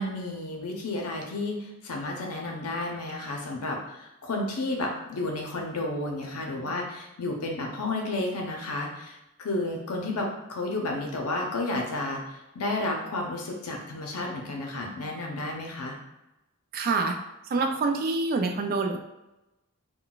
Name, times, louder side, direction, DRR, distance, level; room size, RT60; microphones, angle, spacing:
voice 1, 0.0-16.0, left 2 dB, 85° left, 1 dB, 0.6 m, -32 dB
voice 2, 16.7-17.2 17.5-19.0, right 3 dB, 45° right, 4 dB, 0.3 m, -26 dB
3.8 x 2.2 x 2.3 m, 0.95 s
head